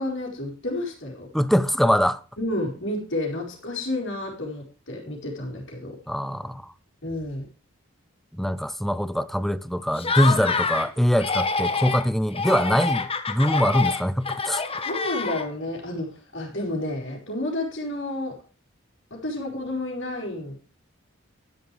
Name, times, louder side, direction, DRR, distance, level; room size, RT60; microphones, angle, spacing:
voice 1, 0.0-1.3 2.4-6.0 7.0-7.4 14.8-18.4 19.1-20.6, left 1 dB, 60° left, 4.6 m, -30 dB
voice 2, 1.3-2.2 6.1-6.7 8.4-14.6, equal, ahead, 0.6 m, -23 dB
Laughter, 9.9-10.9 11.2-12.1 12.3-15.7, left 4 dB, 30° left, 1.3 m, -27 dB
12.5 x 11.0 x 3.4 m
head